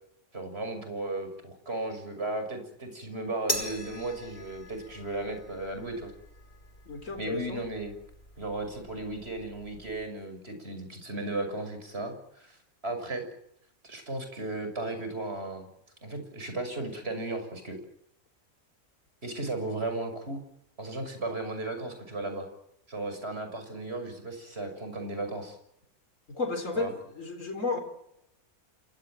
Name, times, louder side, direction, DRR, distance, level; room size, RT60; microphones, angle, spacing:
voice 1, 0.3-6.1 7.2-7.9 8.4-12.6 12.8-13.2 13.8-15.7 16.0-17.8 19.2-20.4 20.8-22.5 22.9-25.6 26.7-26.9, right 2 dB, 40° right, 7 dB, 6.7 m, -35 dB
sound 1, 3.5-10.1, left 1 dB, 40° left, 5.6 m, -40 dB
voice 2, 6.9-7.6 26.3-27.8, left 3 dB, 55° left, 5 dB, 4.4 m, -33 dB
28.0 x 18.0 x 9.2 m, 0.76 s
omnidirectional pair, 1.6 m